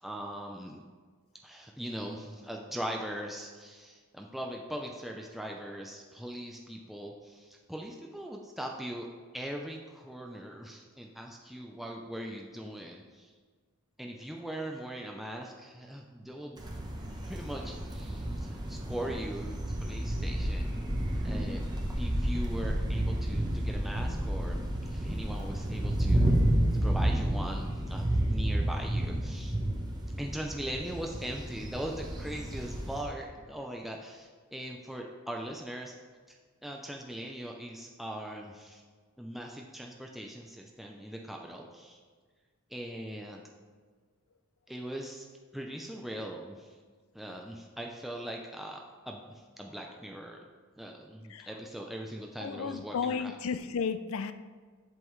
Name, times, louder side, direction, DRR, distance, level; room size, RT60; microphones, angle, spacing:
voice 1, 0.0-0.8 1.4-9.1 9.3-13.3 14.0-20.7 21.2-21.6 22.0-26.3 26.7-29.6 30.2-36.0 36.3-38.8 39.2-42.0 42.7-43.4 44.7-45.3 45.5-46.8 47.1-50.5 50.8-53.3, right 1 dB, ahead, 0 dB, 0.4 m, -40 dB
sound 1, 16.6-33.0, right 1 dB, 20° right, 0.8 m, -31 dB
voice 2, 52.4-54.3, left 6 dB, 65° left, 11 dB, 0.4 m, -33 dB
7.8 x 7.5 x 3.1 m, 1.5 s
head